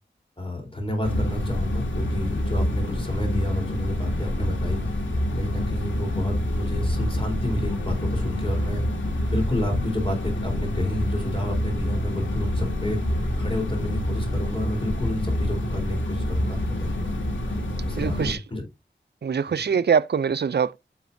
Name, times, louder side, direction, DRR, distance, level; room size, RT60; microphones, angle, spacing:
voice 1, 0.4-4.8 5.4-8.9 9.3-13.0 13.4-17.1 17.8-18.6 19.5-19.6, left 1 dB, 30° left, 4.0 m, -30 dB
sound 1, 1.0-18.3, left 1 dB, 85° left, 2.0 m, -27 dB
voice 2, 18.0-18.4 19.2-20.8, right 6 dB, 60° right, 0.5 m, -23 dB
9.3 x 7.1 x 2.7 m
wide cardioid pair, 75°, 19 cm